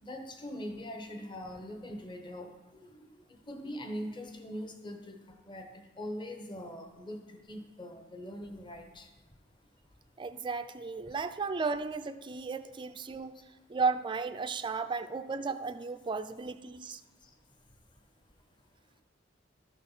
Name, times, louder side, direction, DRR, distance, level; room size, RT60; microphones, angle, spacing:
voice 1, 0.0-2.5 2.8-3.0 3.5-5.2 5.5-5.7 6.0-7.2 7.5-9.1, equal, 25° left, 4 dB, 0.8 m, -41 dB
voice 2, 10.2-13.4 13.7-17.0, right 4 dB, 25° right, 11 dB, 0.3 m, -34 dB
12.5 x 4.2 x 5.6 m, 1.1 s
head